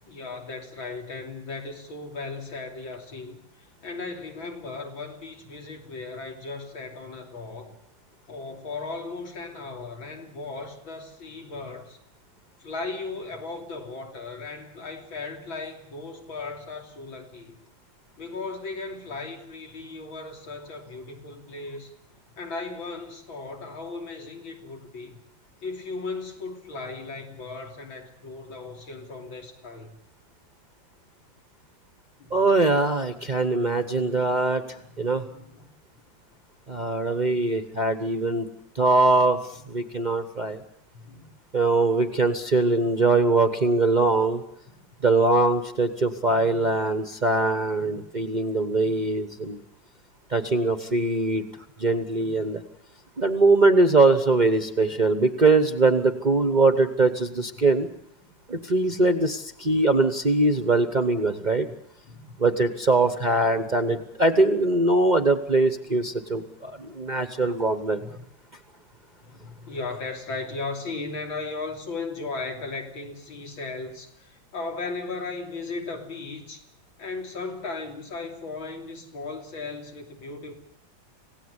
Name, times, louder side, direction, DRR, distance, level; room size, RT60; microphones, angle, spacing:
voice 1, 0.1-3.4 3.8-7.8 8.3-12.0 12.6-17.6 18.2-21.9 22.3-25.2 25.6-30.0 32.2-32.4 33.2-34.1 34.8-35.7 39.5-39.9 40.9-41.3 42.7-42.8 47.8-48.1 52.1-52.5 61.6-61.8 62.0-62.2 63.1-63.6 63.8-64.0 68.0-68.2 69.2-76.6 77.0-80.5, left 3 dB, 85° left, 2 dB, 3.9 m, -37 dB
voice 2, 32.3-34.6 35.0-35.2 36.7-38.5 38.7-39.4 39.7-40.6 41.5-44.4 45.0-49.6 50.3-51.4 51.8-52.6 53.2-57.9 58.5-61.7 62.4-68.0, right 2 dB, 30° right, 9 dB, 0.9 m, -22 dB
27.0 x 17.5 x 8.2 m, 0.79 s
omnidirectional pair, 2.1 m